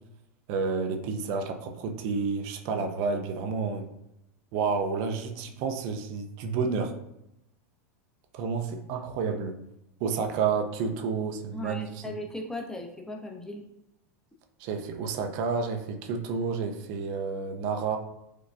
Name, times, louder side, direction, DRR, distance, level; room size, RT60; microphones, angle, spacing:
voice 1, 0.5-3.9 4.5-6.9 8.3-9.6 10.0-12.1 14.6-18.0, right 5 dB, 55° right, 5 dB, 0.5 m, -30 dB
voice 2, 11.5-13.6, left 1 dB, 5° left, 1 dB, 0.7 m, -37 dB
4.6 x 2.2 x 2.4 m, 0.85 s
hypercardioid pair, 95°, 8 cm